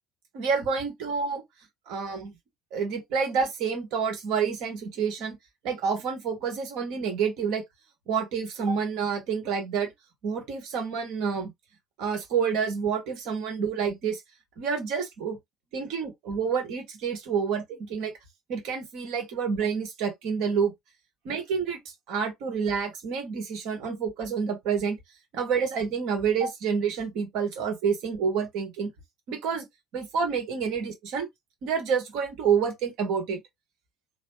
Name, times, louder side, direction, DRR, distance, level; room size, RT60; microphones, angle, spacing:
voice 1, 0.3-1.4 1.9-2.3 2.7-5.3 5.6-7.6 8.1-9.9 10.2-11.5 12.0-14.2 14.6-15.4 15.7-18.1 18.5-20.7 21.2-21.8 22.1-25.0 25.3-28.9 29.3-29.7 29.9-31.3 31.6-33.4, right 6 dB, 55° right, 1.1 m, -28 dB
3.1 x 2.0 x 3.1 m
figure-of-eight pair, 60°, 0 cm